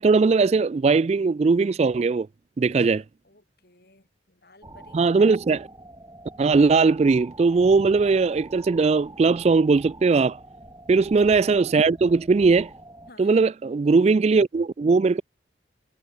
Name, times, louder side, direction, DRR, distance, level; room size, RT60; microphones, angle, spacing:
voice 1, 0.0-2.3 2.6-3.0 4.9-5.7 6.4-10.4 10.9-12.7 13.2-15.2, right 4 dB, 35° right, 0.3 m, -19 dB
voice 2, 2.8-5.0 13.1-13.5, left 2 dB, 55° left, 5.4 m, -54 dB
sound 1, 4.6-13.1, right 1 dB, 20° right, 7.7 m, -45 dB
head